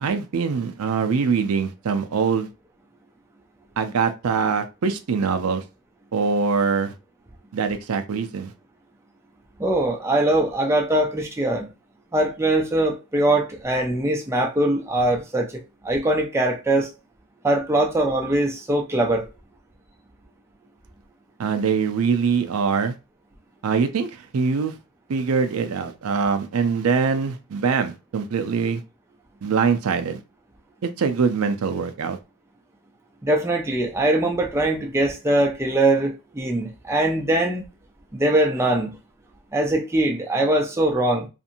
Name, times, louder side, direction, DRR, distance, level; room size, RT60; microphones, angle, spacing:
voice 1, 0.0-2.5 3.8-5.6 6.1-6.9 7.5-8.5 21.4-22.9 23.6-24.7 25.1-28.8 29.4-30.2 30.8-32.2, right 5 dB, 85° right, 0.4 m, -23 dB
voice 2, 9.6-11.7 12.1-16.9 17.4-19.3 33.2-37.6 38.1-39.0 39.5-41.3, right 1 dB, 10° right, 0.3 m, -22 dB
2.7 x 2.5 x 2.5 m
head